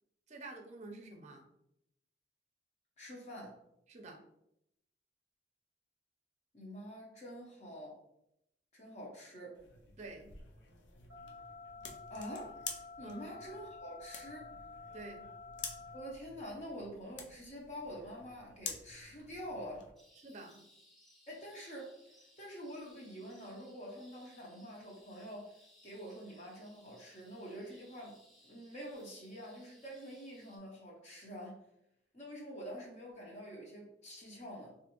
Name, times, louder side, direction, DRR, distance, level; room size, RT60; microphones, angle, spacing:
voice 1, 0.3-1.4 3.9-4.2 10.0-10.3 13.0-13.2 14.9-15.2 20.2-20.6, right 2 dB, 40° right, 3 dB, 0.5 m, -49 dB
voice 2, 3.0-3.6 6.5-8.0 8.7-9.6 12.1-12.5 13.0-14.5 15.9-19.9 21.3-22.0 22.4-25.5 25.8-31.6 32.1-34.8, equal, 40° left, -2 dB, 0.7 m, -46 dB
sound 1, 9.5-19.9, left 5 dB, 85° left, 0.5 m, -49 dB
sound 2, 11.1-16.1, left 4 dB, 55° left, 1.3 m, -51 dB
sound 3, 20.0-30.6, left 1 dB, ahead, 0.7 m, -65 dB
3.1 x 2.5 x 2.9 m, 0.80 s
head